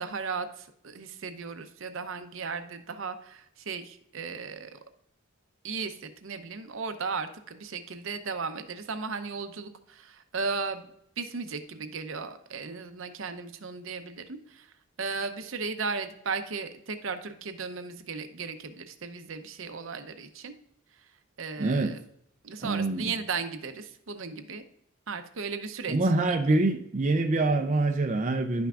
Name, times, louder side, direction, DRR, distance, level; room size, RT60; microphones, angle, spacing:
voice 1, 0.0-4.8 5.6-10.9 11.2-14.7 15.0-20.5 21.4-22.0 22.4-24.6 25.1-26.0 26.3-26.4, right 4 dB, 70° right, 8 dB, 0.7 m, -36 dB
voice 2, 21.6-21.9 22.6-23.1 25.9-28.7, right 2 dB, 35° right, 4 dB, 0.5 m, -25 dB
11.0 x 5.8 x 2.4 m, 0.73 s
head